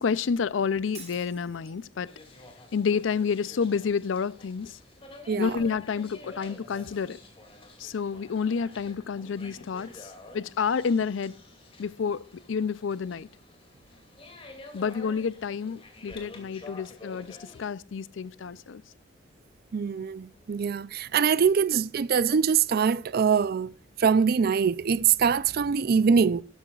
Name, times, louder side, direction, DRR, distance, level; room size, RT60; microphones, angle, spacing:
voice 1, 0.0-2.1 2.7-4.8 5.4-7.2 7.8-11.4 11.8-13.3 14.7-18.8, left 6 dB, 85° left, 0.5 m, -29 dB
Shatter, 0.9-1.9, right 6 dB, 35° right, 3.0 m, -47 dB
sound 1, 2.1-17.7, left 2 dB, 30° left, 2.5 m, -49 dB
voice 2, 19.7-23.7 24.0-26.4, right 6 dB, 55° right, 0.4 m, -23 dB
13.0 x 12.5 x 2.4 m
head